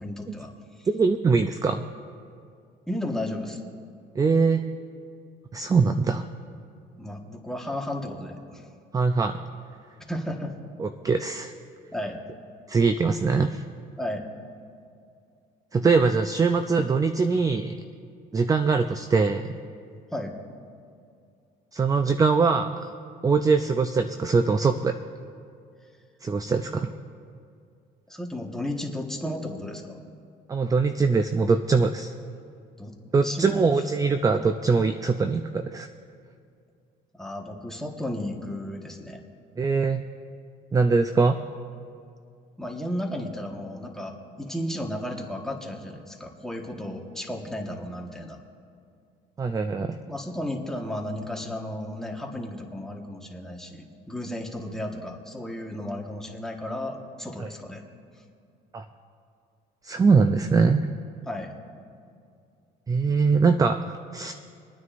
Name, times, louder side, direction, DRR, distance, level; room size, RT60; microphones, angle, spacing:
voice 1, 0.0-0.9 2.9-3.6 7.0-8.6 10.1-10.5 11.9-12.2 14.0-14.2 20.1-20.3 28.1-30.0 32.8-32.9 33.2-33.6 37.2-39.2 42.6-48.4 50.1-57.8 61.3-61.5, left 1 dB, 5° left, 0 dB, 1.4 m, -34 dB
voice 2, 0.9-1.9 4.2-4.6 5.5-6.2 8.9-9.4 10.8-11.5 12.7-13.6 15.7-17.8 18.3-19.5 21.7-22.9 23.2-24.9 26.2-26.9 30.5-32.1 33.1-35.9 39.6-40.0 40.7-41.4 49.4-50.0 57.4-57.5 58.7-58.8 59.8-60.9 62.9-64.3, right 4 dB, 20° right, 8 dB, 0.4 m, -22 dB
26.5 x 9.5 x 2.5 m, 2.4 s
cardioid pair, 110°, 17 cm